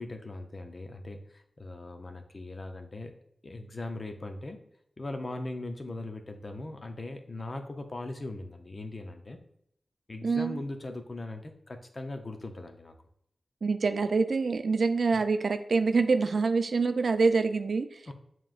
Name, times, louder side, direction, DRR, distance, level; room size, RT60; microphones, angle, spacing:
voice 1, 0.0-3.1 3.4-4.6 5.0-9.4 10.1-13.0 15.1-15.2 18.1-18.2, left 2 dB, 45° left, 6 dB, 0.6 m, -39 dB
voice 2, 10.2-10.6 13.6-18.1, right 4 dB, 70° right, 9 dB, 0.4 m, -26 dB
7.2 x 3.0 x 2.5 m, 0.72 s
wide cardioid pair, 80°, 0 cm